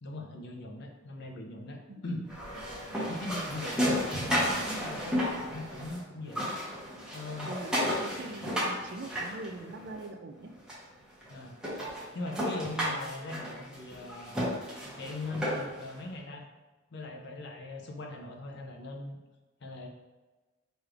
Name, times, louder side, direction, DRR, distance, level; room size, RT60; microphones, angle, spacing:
voice 1, 0.0-2.3 3.1-6.5 7.1-7.6 11.3-11.6 12.1-14.5 15.0-16.4 16.9-19.2 19.6-19.9, left 2 dB, 60° left, 2 dB, 0.6 m, -40 dB
voice 2, 1.9-2.3 7.5-7.7 8.0-10.5, right 2 dB, 55° right, 5 dB, 0.4 m, -42 dB
sound 1, 2.3-6.0 6.3-10.0 10.7-10.8 11.2-11.3 11.6-15.9, equal, 5° right, 1.0 m, -33 dB
4.8 x 3.1 x 2.5 m, 1.2 s
head